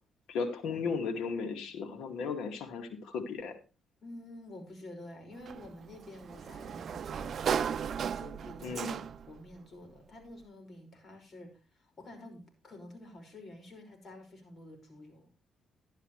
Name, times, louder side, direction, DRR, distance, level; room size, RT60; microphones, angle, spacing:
voice 1, 0.3-3.6 8.6-9.0, left 5 dB, 85° left, 5 dB, 2.3 m, -35 dB
voice 2, 4.0-7.5 7.9-15.3, left 1 dB, 45° left, 3 dB, 5.5 m, -49 dB
Sliding door, 5.4-9.4, right 7 dB, 60° right, 0.6 m, -35 dB
12.0 x 11.0 x 3.2 m, 0.32 s
cardioid pair, 90°, 0 cm